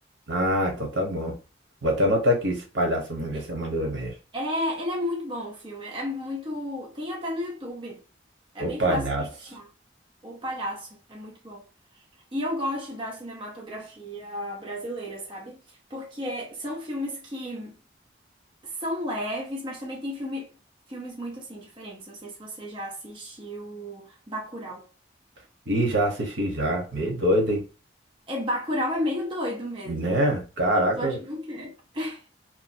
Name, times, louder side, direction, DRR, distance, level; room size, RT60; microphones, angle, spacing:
voice 1, 0.3-1.4 1.8-4.1 8.6-9.3 25.7-27.6 29.9-31.2, equal, 85° right, 1.0 m, -25 dB
voice 2, 4.3-8.0 8.5-9.7 10.2-11.6 12.3-15.6 15.9-17.8 18.6-20.5 20.9-24.9 28.3-30.2 31.0-32.2, left 1 dB, 25° right, 0.7 m, -33 dB
2.9 x 2.3 x 2.6 m
head